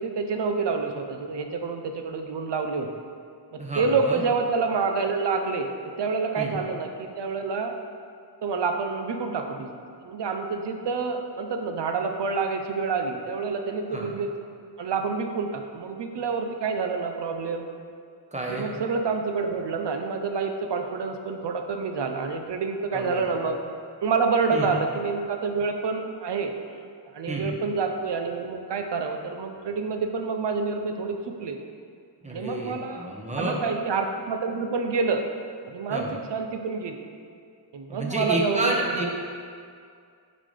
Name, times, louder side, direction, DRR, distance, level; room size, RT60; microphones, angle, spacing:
voice 1, 0.0-2.9 3.5-5.7 6.0-7.7 8.4-14.3 14.8-17.6 18.5-23.6 24.0-26.5 27.1-31.6 32.3-33.1 33.4-35.2 35.7-37.0 37.7-39.1, right 4 dB, 75° right, 5 dB, 0.7 m, -28 dB
voice 2, 3.6-4.2 6.4-6.6 13.9-14.1 18.3-18.7 22.9-23.2 24.5-24.7 27.3-27.5 32.2-33.6 35.9-36.2 37.9-39.1, right 1 dB, 15° right, -2 dB, 1.0 m, -30 dB
9.9 x 4.0 x 3.3 m, 2.3 s
wide cardioid pair, 90°, 42 cm